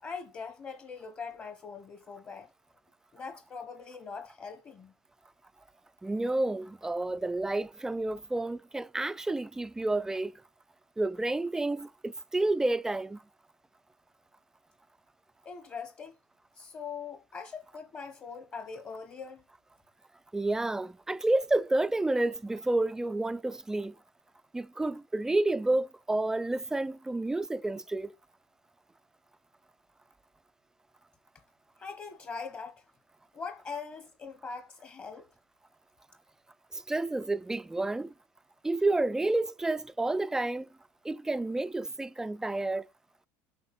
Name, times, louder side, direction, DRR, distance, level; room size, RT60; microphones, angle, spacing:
voice 1, 0.0-2.5 3.1-4.9 15.4-16.2 16.5-19.4 31.8-32.8 33.3-35.3, left 5 dB, 25° left, 1.2 m, -42 dB
voice 2, 6.0-10.3 11.0-13.2 20.3-24.0 24.5-28.1 36.7-38.1 38.6-40.7 41.0-42.9, right 2 dB, 5° right, 0.4 m, -30 dB
8.0 x 5.0 x 6.0 m
supercardioid pair, 135°, 7 cm